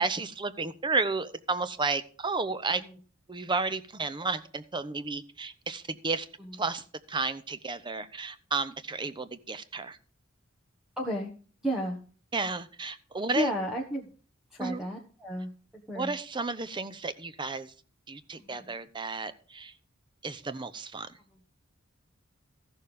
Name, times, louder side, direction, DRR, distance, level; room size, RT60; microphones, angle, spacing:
voice 1, 0.0-2.8 3.3-6.3 6.5-10.0 12.3-13.5 14.6-14.8 15.9-17.7 18.1-19.7 20.2-21.1, right 3 dB, 25° right, 13 dB, 0.7 m, -32 dB
voice 2, 11.0-11.3 11.6-12.0 13.3-14.1 14.5-15.5 15.9-16.1 18.4-18.8 21.3-21.4, equal, 5° right, -1 dB, 1.2 m, -33 dB
14.5 x 6.7 x 5.2 m, 0.40 s
head